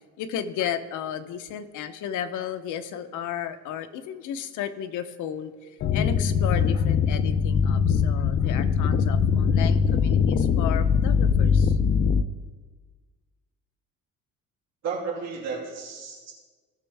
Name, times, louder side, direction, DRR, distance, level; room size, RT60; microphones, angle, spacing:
voice 1, 0.2-5.5 5.9-11.8, left 9 dB, 65° left, 9 dB, 0.8 m, -33 dB
sound 1, 5.8-12.2, left 6 dB, 40° left, 0.4 m, -22 dB
voice 2, 14.8-16.3, right 5 dB, 55° right, -4 dB, 2.9 m, -33 dB
17.5 x 6.2 x 3.4 m, 1.4 s
cardioid pair, 145°, 33 cm